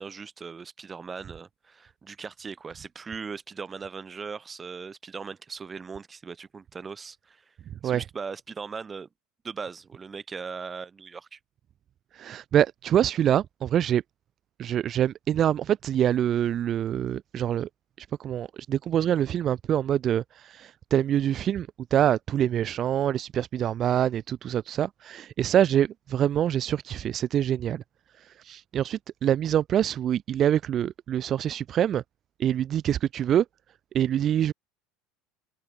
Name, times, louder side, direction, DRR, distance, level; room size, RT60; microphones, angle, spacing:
voice 1, 0.0-7.5 7.8-9.1 9.4-11.4, right 5 dB, 20° right, 3.1 m, -39 dB
voice 2, 12.1-14.0 14.6-17.7 18.0-27.8 28.2-32.0 32.4-33.4 33.9-34.5, right 10 dB, 40° right, 0.6 m, -25 dB
supercardioid pair, 110°, 0 cm